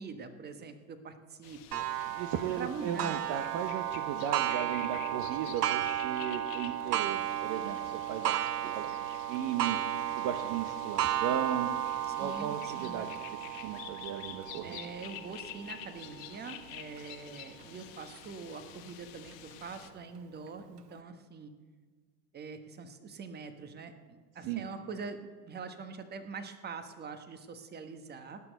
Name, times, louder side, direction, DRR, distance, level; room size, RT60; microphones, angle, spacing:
voice 1, 0.0-1.8 2.6-3.2 12.1-13.1 14.6-21.5 22.3-28.4, right 5 dB, 20° right, 8 dB, 1.2 m, -44 dB
sound 1, 1.4-19.9, left 13 dB, 55° left, 1.2 m, -49 dB
Clock, 1.7-17.0 17.6-17.7 18.2-18.3 19.3-19.4, right 12 dB, 85° right, 0.7 m, -34 dB
voice 2, 2.2-8.3 8.7-9.8 10.2-11.7 12.2-13.1 13.5-14.8 24.4-24.7, right 9 dB, 40° right, 7 dB, 0.9 m, -36 dB
18.0 x 6.2 x 8.0 m, 1.5 s
hypercardioid pair, 95°, 46 cm